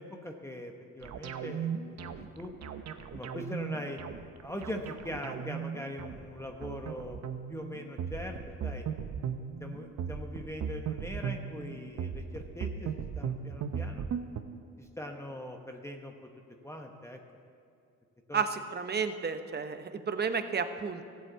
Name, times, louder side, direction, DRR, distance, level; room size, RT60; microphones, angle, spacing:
voice 1, 0.0-2.5 3.1-4.0 4.4-7.2 7.5-8.4 8.6-8.8 9.6-14.1 14.8-16.3 16.6-17.2 18.3-18.4, left 1 dB, 10° left, 3 dB, 1.0 m, -41 dB
sound 1, 1.0-14.4, right 7 dB, 60° right, 0.9 m, -37 dB
voice 2, 18.3-21.1, right 5 dB, 35° right, 8 dB, 1.0 m, -32 dB
13.5 x 8.2 x 8.0 m, 2.3 s
cardioid pair, 90°, 30 cm